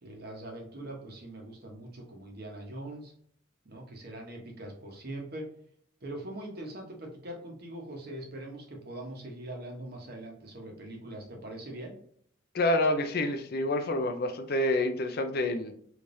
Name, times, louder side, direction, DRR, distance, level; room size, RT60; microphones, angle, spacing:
voice 1, 0.0-3.1 3.6-5.5 6.0-11.9, right 1 dB, 50° right, 0 dB, 1.0 m, -42 dB
voice 2, 12.5-15.7, left 1 dB, 50° left, 7 dB, 0.5 m, -28 dB
3.3 x 3.1 x 2.6 m, 0.65 s
head